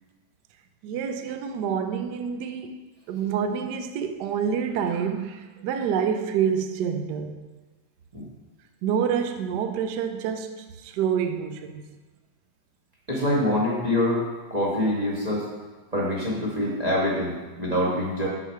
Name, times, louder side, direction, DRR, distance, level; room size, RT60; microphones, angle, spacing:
voice 1, 0.8-2.8 3.1-7.3 8.8-11.9, right 7 dB, 70° right, 1.1 m, -27 dB
voice 2, 13.1-14.2 14.5-15.5 15.9-18.3, left 1 dB, 25° right, 1.1 m, -25 dB
6.3 x 6.2 x 4.5 m
omnidirectional pair, 2.1 m